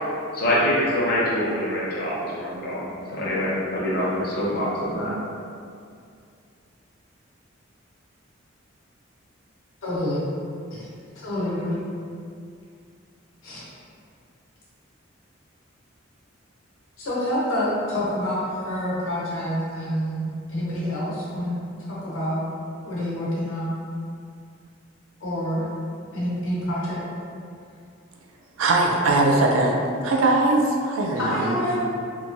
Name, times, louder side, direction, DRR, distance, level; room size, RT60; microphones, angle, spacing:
voice 1, 0.3-5.1, left 1 dB, 50° left, -7 dB, 0.7 m, -25 dB
voice 2, 9.8-10.2 10.7-10.9 11.2-11.8 13.4-13.7 17.0-21.6 21.9-22.4 22.8-23.7 25.2-25.6 26.1-27.0 31.2-31.8, equal, 90° left, -8 dB, 0.9 m, -27 dB
voice 3, 28.6-29.7 30.0-31.6, right 2 dB, 80° right, 0 dB, 0.4 m, -20 dB
3.0 x 2.2 x 2.6 m, 2.4 s
head